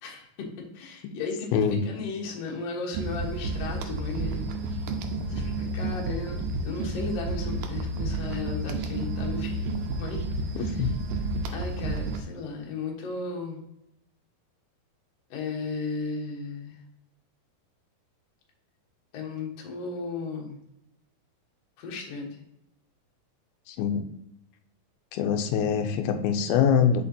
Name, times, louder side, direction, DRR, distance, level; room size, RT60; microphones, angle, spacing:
voice 1, 0.0-4.8 5.3-9.7 10.0-10.3 10.6-10.9 11.5-13.6 15.3-16.8 19.1-20.6 21.8-22.4, left 4 dB, 60° left, 0 dB, 1.9 m, -35 dB
sound 1, 2.9-12.2, right 2 dB, 80° right, 2.1 m, -31 dB
voice 2, 10.6-10.9 23.7-24.1 25.1-27.1, left 7 dB, 85° left, 7 dB, 2.4 m, -24 dB
6.5 x 5.3 x 2.7 m, 0.81 s
omnidirectional pair, 4.3 m